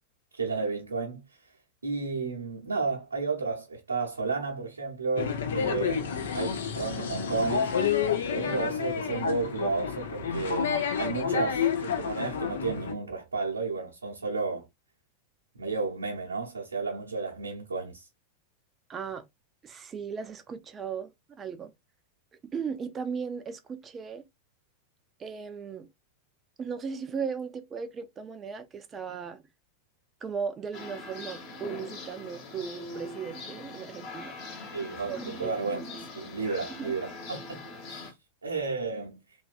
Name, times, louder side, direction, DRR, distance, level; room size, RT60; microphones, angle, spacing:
voice 1, 0.3-1.2 1.8-7.8 8.3-14.7 15.5-18.1 34.7-37.6 37.9-38.1 38.4-39.2, right 4 dB, 75° right, 0.9 m, -32 dB
sound 1, 5.2-12.9, left 7 dB, 60° left, 0.6 m, -29 dB
voice 2, 18.9-19.2 19.6-21.7 22.5-24.2 25.2-25.9 26.6-29.4 30.2-34.7 35.1-35.5 36.8-36.9, right 6 dB, 25° right, 0.5 m, -37 dB
sound 2, 30.7-38.1, left 2 dB, 40° left, 1.1 m, -42 dB
3.1 x 2.5 x 2.4 m
figure-of-eight pair, 90°, 0 cm